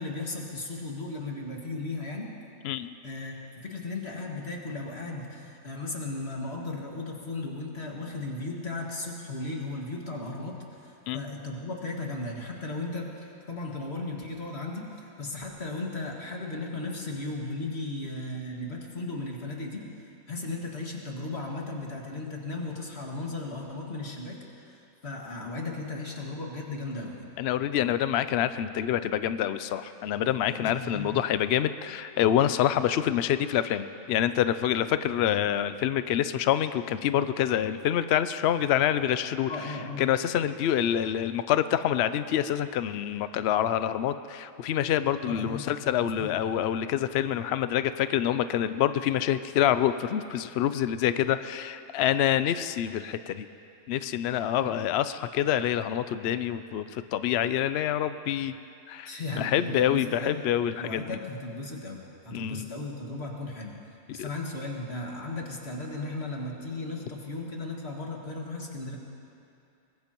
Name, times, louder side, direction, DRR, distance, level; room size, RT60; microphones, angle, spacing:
voice 1, 0.0-2.4 3.0-14.9 15.2-19.9 20.3-24.4 24.7-24.8 25.0-27.3 30.5-31.2 39.5-40.0 45.2-45.7 46.0-46.3 54.6-54.7 59.1-60.5 60.8-63.8 64.1-69.0, left 2 dB, 40° left, -1 dB, 2.2 m, -36 dB
voice 2, 2.6-2.9 11.1-11.2 27.4-39.5 40.0-53.5 53.9-58.5 58.9-61.2 62.3-62.7 64.2-64.3, left 10 dB, 85° left, 12 dB, 0.5 m, -26 dB
23.5 x 20.5 x 3.0 m, 2.6 s
omnidirectional pair, 1.7 m